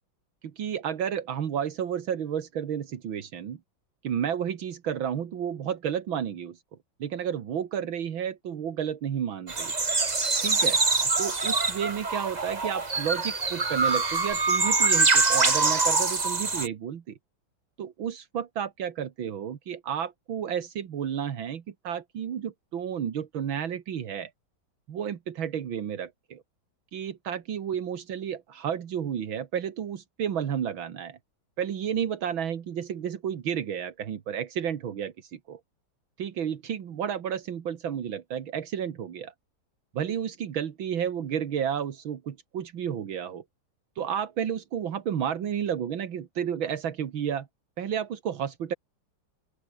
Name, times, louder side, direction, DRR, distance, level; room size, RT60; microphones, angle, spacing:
voice 1, 0.4-3.6 4.0-6.6 7.0-9.7 10.4-17.2 17.8-24.3 24.9-26.4 26.9-31.2 31.6-35.6 36.2-39.3 39.9-43.4 44.0-47.5 47.8-48.7, right 8 dB, 80° right, 2.3 m, -31 dB
sound 1, 9.5-16.7, right 3 dB, 25° right, 1.4 m, -24 dB
open air
omnidirectional pair, 2.2 m